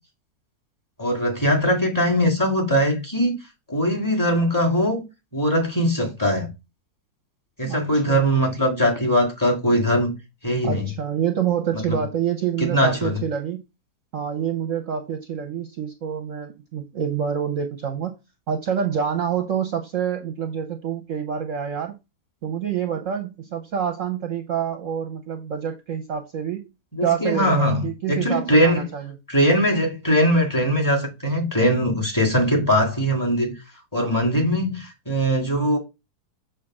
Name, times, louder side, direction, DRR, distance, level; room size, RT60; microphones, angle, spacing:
voice 1, 1.0-3.4 3.7-5.0 5.3-6.5 7.6-10.1 10.4-10.8 11.9-12.0 12.6-13.2 27.0-28.8 29.3-33.5 33.9-35.8, equal, 10° left, 1.8 m, -21 dB
voice 2, 7.6-8.3 10.6-13.6 14.1-18.2 18.5-22.0 22.4-26.7 27.0-29.1, right 8 dB, 60° right, 1.0 m, -27 dB
6.6 x 3.2 x 5.9 m
omnidirectional pair, 1.8 m